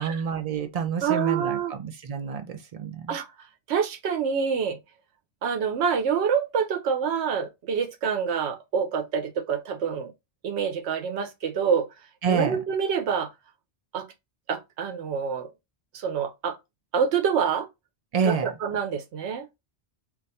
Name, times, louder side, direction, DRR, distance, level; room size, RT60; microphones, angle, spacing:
voice 1, 0.0-3.2 12.2-12.6 18.1-18.5, right 6 dB, 50° right, 0.5 m, -28 dB
voice 2, 1.0-1.7 3.1-3.3 3.7-4.8 5.4-10.1 10.4-11.9 12.3-13.3 13.9-14.1 14.5-15.5 15.9-16.6 16.9-17.7 18.2-19.5, right 7 dB, 85° right, 0.9 m, -26 dB
2.5 x 2.3 x 4.0 m
omnidirectional pair, 1.1 m